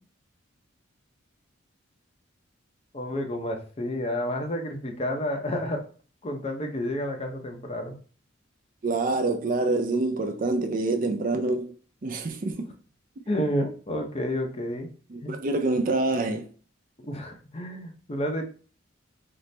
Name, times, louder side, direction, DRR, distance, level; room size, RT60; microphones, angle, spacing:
voice 1, 2.9-5.8 6.2-8.0 13.3-14.9 15.2-15.4 17.0-18.4, left 1 dB, 30° left, 0.6 m, -30 dB
voice 2, 8.8-11.7 12.0-12.7 15.1-16.5, right 2 dB, 45° right, 0.5 m, -26 dB
4.1 x 2.0 x 3.2 m
head